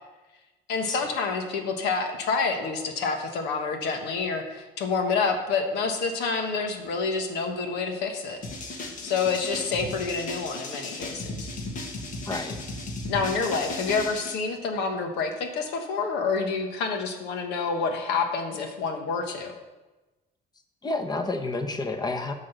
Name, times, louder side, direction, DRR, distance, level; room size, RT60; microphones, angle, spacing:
voice 1, 0.7-8.4 9.0-11.5 13.1-19.6, left 4 dB, 90° left, 4 dB, 1.4 m, -28 dB
sound 1, 8.4-14.3, left 2 dB, 50° left, 1.6 m, -36 dB
voice 2, 12.3-12.6 20.8-22.3, left 2 dB, 25° left, 6 dB, 1.0 m, -30 dB
9.4 x 4.0 x 6.8 m, 1.1 s
cardioid pair, 110°, 17 cm